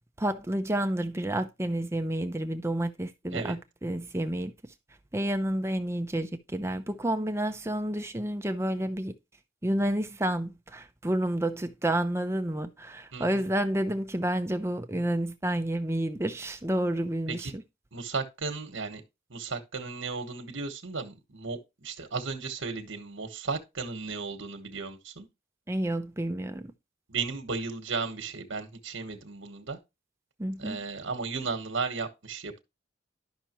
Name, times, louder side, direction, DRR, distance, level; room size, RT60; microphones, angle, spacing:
voice 1, 0.2-4.5 5.1-9.1 9.6-17.6 25.7-26.7 30.4-30.8, right 1 dB, 15° right, 0.6 m, -30 dB
voice 2, 17.9-19.0 19.3-25.3 27.1-29.8 30.6-32.6, right 4 dB, 80° right, 1.3 m, -35 dB
11.5 x 5.8 x 3.0 m
head